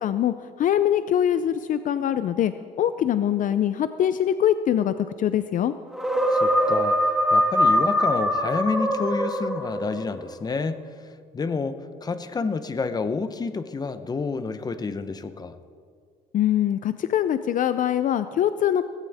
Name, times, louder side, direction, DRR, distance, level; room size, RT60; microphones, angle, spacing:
voice 1, 0.0-2.5 2.8-5.7 16.3-18.8, left 10 dB, 50° left, 12 dB, 0.5 m, -23 dB
sound 1, 5.9-10.0, equal, ahead, 1.7 m, -22 dB
voice 2, 6.3-7.0 7.3-10.8 11.3-15.6, left 4 dB, 25° left, 11 dB, 0.8 m, -29 dB
17.5 x 16.5 x 3.5 m, 2.2 s
cardioid pair, 110°, 17 cm